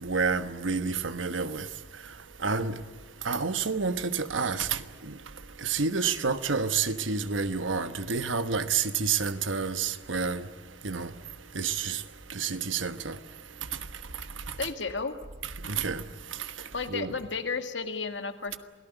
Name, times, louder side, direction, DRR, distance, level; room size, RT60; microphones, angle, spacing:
voice 1, 0.0-1.6 2.4-2.7 3.2-4.7 5.6-10.4 10.8-11.1 11.5-12.0 12.4-13.1 15.7-16.0 16.9-17.1, right 5 dB, 80° right, 1.3 m, -29 dB
voice 2, 14.6-15.1 16.7-18.6, left 4 dB, 70° left, 1.9 m, -32 dB
27.5 x 18.0 x 9.2 m
head